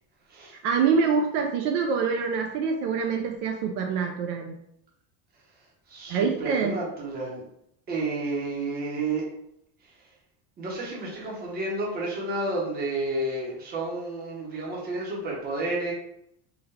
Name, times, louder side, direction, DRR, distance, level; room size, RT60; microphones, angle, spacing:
voice 1, 0.6-4.5 6.1-6.8, right 5 dB, 60° right, 2 dB, 0.5 m, -25 dB
voice 2, 5.9-7.4 7.9-9.2 10.6-15.9, right 2 dB, 20° right, -3 dB, 0.8 m, -31 dB
3.8 x 2.2 x 4.0 m, 0.75 s
cardioid pair, 180°, 44 cm